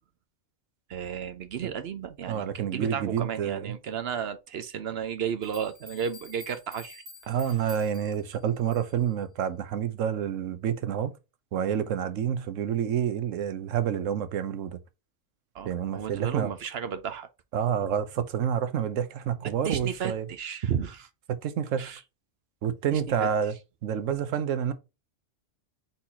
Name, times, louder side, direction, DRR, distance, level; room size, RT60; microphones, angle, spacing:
voice 1, 0.9-7.0 15.5-17.3 19.4-21.1 21.8-22.0 22.9-23.3, right 8 dB, 60° right, 0.8 m, -33 dB
voice 2, 2.3-3.7 7.3-11.1 11.5-14.8 15.6-16.5 17.5-20.3 21.3-22.0 22.6-23.5 23.8-24.7, right 8 dB, 85° right, 1.1 m, -28 dB
sound 1, 5.4-9.1, left 2 dB, 30° right, 1.6 m, -50 dB
4.2 x 3.9 x 2.8 m
omnidirectional pair, 1.3 m